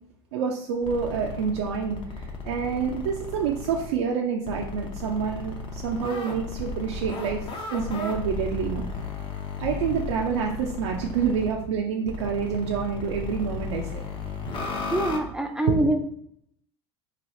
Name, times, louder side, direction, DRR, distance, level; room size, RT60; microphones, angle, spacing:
voice 1, 0.3-8.8 9.6-14.0 15.7-16.0, right 6 dB, 80° right, 0 dB, 0.4 m, -28 dB
sound 1, 0.8-3.9 4.5-11.5 12.1-15.2, left 4 dB, 35° left, 0.6 m, -35 dB
voice 2, 14.9-16.0, right 1 dB, 5° right, 5 dB, 0.4 m, -24 dB
3.2 x 2.3 x 2.6 m, 0.71 s
hypercardioid pair, 90°, 14 cm